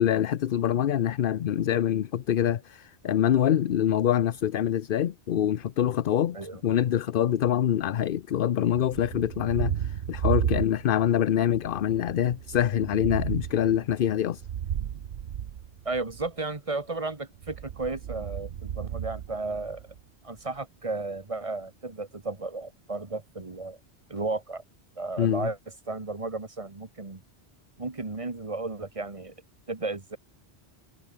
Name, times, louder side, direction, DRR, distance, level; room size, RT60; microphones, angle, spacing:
voice 1, 0.0-6.4 6.6-14.4 25.2-25.5, left 10 dB, 60° left, 0.8 m, -25 dB
Thunder, 8.7-11.2 11.5-16.3 17.4-20.0, right 9 dB, 75° right, 1.1 m, -33 dB
voice 2, 15.8-19.8 20.2-23.8 24.1-24.6 25.0-25.6 25.9-27.2 27.8-29.3 29.7-30.2, right 3 dB, 30° right, 1.7 m, -34 dB
omnidirectional pair, 1.1 m